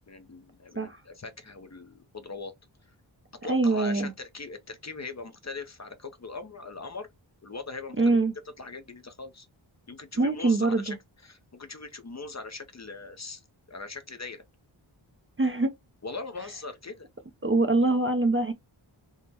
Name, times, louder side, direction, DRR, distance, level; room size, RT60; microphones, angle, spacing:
voice 1, 0.0-2.5 3.4-7.1 7.4-8.2 8.6-9.5 9.9-11.0 11.2-13.4 13.7-14.4 16.0-17.1, left 3 dB, 35° left, 0.5 m, -40 dB
voice 2, 3.5-4.1 8.0-8.3 10.2-10.8 15.4-15.7 17.4-18.5, right 2 dB, 30° right, 0.5 m, -23 dB
3.5 x 2.0 x 2.8 m
wide cardioid pair, 50°, 48 cm